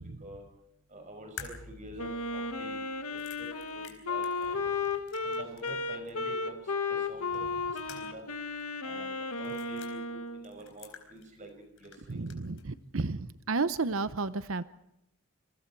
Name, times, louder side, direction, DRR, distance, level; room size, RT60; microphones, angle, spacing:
voice 1, 0.9-2.8 3.1-4.6 5.2-6.6 6.9-7.4 7.9-8.3 8.8-10.0 10.3-11.5 11.8-12.2, right 1 dB, 35° right, 5 dB, 5.7 m, -47 dB
sound 1, 1.4-5.8 6.1-6.2 7.3-8.3 8.6-8.7 9.4-9.9 10.4-11.5 11.8-12.7, left 6 dB, 65° left, 4.2 m, -49 dB
Wind instrument woodwind instrument, 2.0-10.5, left 4 dB, 90° left, 1.7 m, -34 dB
voice 2, 12.1-14.6, right 3 dB, 70° right, 13 dB, 0.8 m, -32 dB
27.5 x 22.5 x 4.7 m, 0.84 s
head